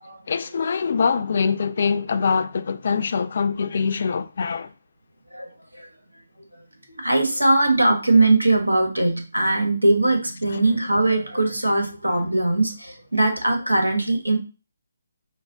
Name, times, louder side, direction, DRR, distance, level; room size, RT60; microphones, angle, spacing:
voice 1, 0.3-4.7, left 5 dB, 50° left, 0.5 m, -23 dB
voice 2, 6.9-14.4, right 2 dB, 90° right, 1.3 m, -20 dB
5.4 x 2.1 x 3.8 m
figure-of-eight pair, 145°, 0 cm